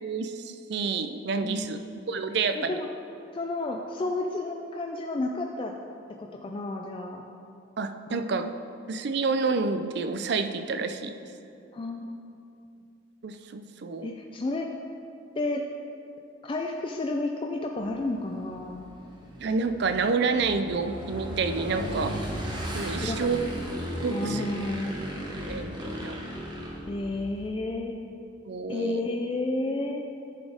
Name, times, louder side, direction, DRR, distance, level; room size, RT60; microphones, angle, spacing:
voice 1, 0.0-1.8 2.1-2.8 7.8-8.5 8.9-11.1 13.2-14.2 19.4-22.1 22.7-23.4 24.0-24.4 25.4-26.2 28.4-29.0, right 4 dB, 55° right, 9 dB, 0.4 m, -29 dB
voice 2, 1.4-2.0 2.6-2.9 3.3-5.7 6.2-7.2 8.1-8.2 11.7-12.2 14.0-14.7 15.3-15.6 16.4-18.9 21.8-22.4 22.8-23.2 24.1-25.0 26.9-28.0 28.7-30.0, left 2 dB, 25° left, 2 dB, 0.3 m, -31 dB
Motorcycle / Engine, 17.8-27.5, equal, 25° right, 1.1 m, -36 dB
10.5 x 4.1 x 4.9 m, 2.6 s
head